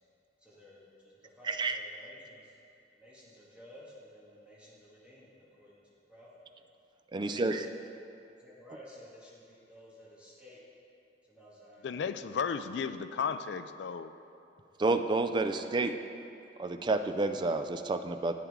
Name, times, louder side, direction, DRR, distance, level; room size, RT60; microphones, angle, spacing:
voice 1, 0.4-2.5 2.9-6.3 7.2-7.9 8.4-10.6 11.3-12.0 15.2-15.7 16.1-16.2, equal, 5° right, -8 dB, 2.0 m, -53 dB
voice 2, 1.5-1.8 7.1-7.7 14.8-15.9 16.6-18.3, right 3 dB, 25° right, 8 dB, 0.3 m, -29 dB
voice 3, 11.8-14.1, left 6 dB, 65° left, 11 dB, 0.4 m, -34 dB
10.0 x 8.5 x 3.7 m, 2.7 s
head